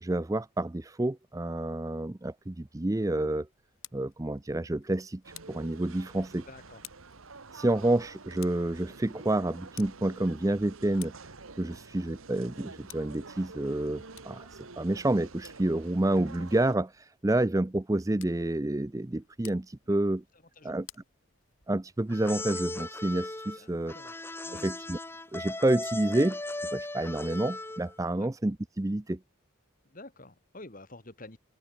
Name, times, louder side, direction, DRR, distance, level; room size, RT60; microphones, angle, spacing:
voice 1, 0.0-3.5 3.9-5.2 5.5-6.5 7.5-11.1 11.6-20.2 20.6-20.9 21.7-23.9 24.6-25.0 25.3-29.2, right 1 dB, 15° right, 0.4 m, -29 dB
Tick, 3.5-21.9, left 14 dB, 75° left, 6.2 m, -56 dB
Thailand Bangkok airport baggage claim busy activity, 5.2-16.8, right 3 dB, 75° right, 1.6 m, -48 dB
voice 2, 6.5-6.8 19.9-20.0 20.6-20.8 23.6-24.1 24.4-24.7 28.1-28.3 29.9-31.4, left 2 dB, 40° left, 1.9 m, -49 dB
sound 1, 22.1-28.0, left 2 dB, 10° left, 0.9 m, -37 dB
open air
head